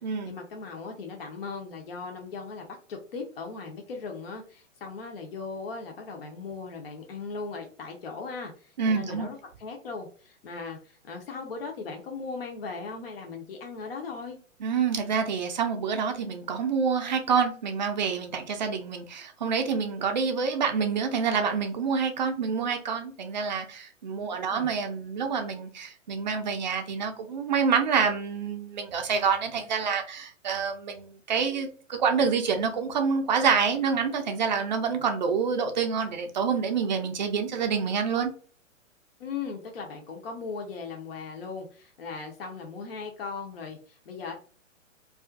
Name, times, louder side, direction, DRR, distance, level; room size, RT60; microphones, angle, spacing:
voice 1, 0.2-14.4 24.5-24.7 39.2-44.3, left 4 dB, 50° left, 0.5 m, -38 dB
voice 2, 8.8-9.3 14.6-38.3, right 6 dB, 40° right, 0.4 m, -27 dB
2.4 x 2.4 x 2.3 m
figure-of-eight pair, 120°, 39 cm